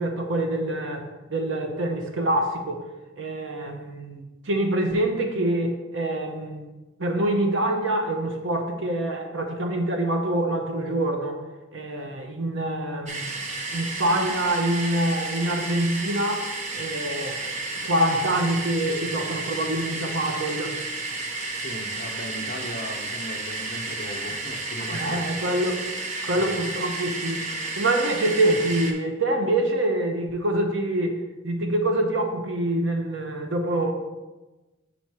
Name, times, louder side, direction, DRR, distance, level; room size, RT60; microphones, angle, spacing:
voice 1, 0.0-2.8 3.2-6.7 7.0-11.4 11.7-13.4 13.7-16.5 16.7-17.5 17.8-20.8 24.9-25.9 26.2-33.9, right 1 dB, 70° right, 4 dB, 0.9 m, -25 dB
sound 1, 13.1-28.9, right 3 dB, 35° right, 0.7 m, -32 dB
voice 2, 21.5-25.2 26.3-26.7, left 1 dB, 45° left, 4 dB, 0.7 m, -37 dB
5.4 x 4.3 x 4.7 m, 1.1 s
head